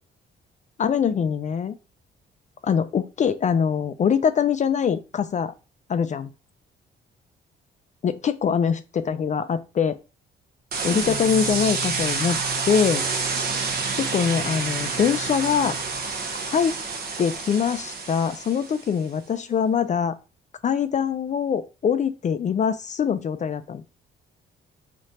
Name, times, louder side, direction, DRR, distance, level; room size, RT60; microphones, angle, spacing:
voice 1, 0.8-1.8 2.6-5.5 5.9-6.3 8.0-10.0 10.8-12.4 12.7-13.0 13.9-15.8 16.5-16.8 17.2-20.1 20.6-23.8, left 7 dB, 40° left, 11 dB, 0.4 m, -23 dB
sound 1, 10.7-18.9, right 4 dB, 50° right, 0.9 m, -28 dB
3.2 x 2.4 x 4.1 m, 0.31 s
cardioid pair, 90°, 20 cm